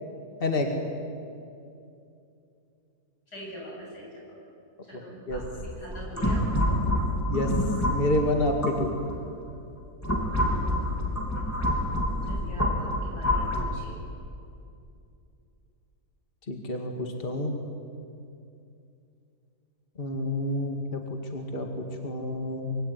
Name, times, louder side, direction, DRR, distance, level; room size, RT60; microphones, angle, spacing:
voice 1, 0.4-0.8 5.3-5.4 7.3-7.5 7.9-8.9 16.5-17.5 20.0-22.8, left 1 dB, 35° left, 3 dB, 2.4 m, -28 dB
voice 2, 3.3-4.4 4.8-6.4 12.2-14.0, equal, 90° left, -2 dB, 8.8 m, -44 dB
sound 1, 5.3-9.2 9.7-13.6, left 1 dB, 10° left, 3.5 m, -27 dB
25.5 x 24.0 x 9.6 m, 2.6 s
omnidirectional pair, 1.7 m